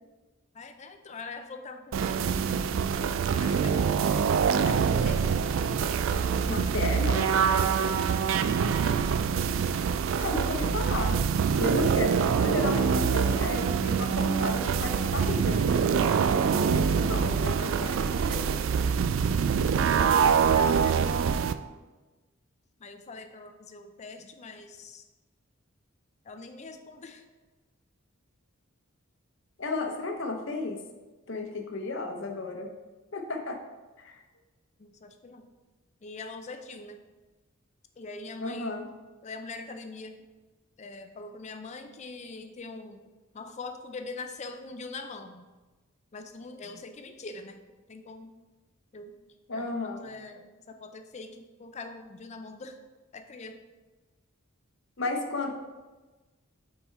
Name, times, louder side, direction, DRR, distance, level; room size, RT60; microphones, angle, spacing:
voice 1, 0.5-2.4 3.2-4.3 4.6-6.3 6.8-7.8 8.7-8.9 20.5-21.4 22.8-25.1 26.3-27.3 34.8-35.5 36.0-37.0 38.0-38.8 39.2-40.2 40.8-43.0 43.3-45.5 46.1-47.6 47.9-48.3 48.9-49.1 49.5-52.8 53.1-53.6, left 3 dB, 30° left, 7 dB, 0.4 m, -43 dB
sound 1, 1.9-21.5, right 6 dB, 65° right, 0.3 m, -25 dB
voice 2, 6.5-7.2 10.2-18.5 29.6-30.8 31.3-32.7 33.1-33.6 34.0-34.2 38.4-38.9 49.5-50.1 55.0-55.5, left 3 dB, 60° left, 3 dB, 0.8 m, -33 dB
5.5 x 4.3 x 4.4 m, 1.2 s
head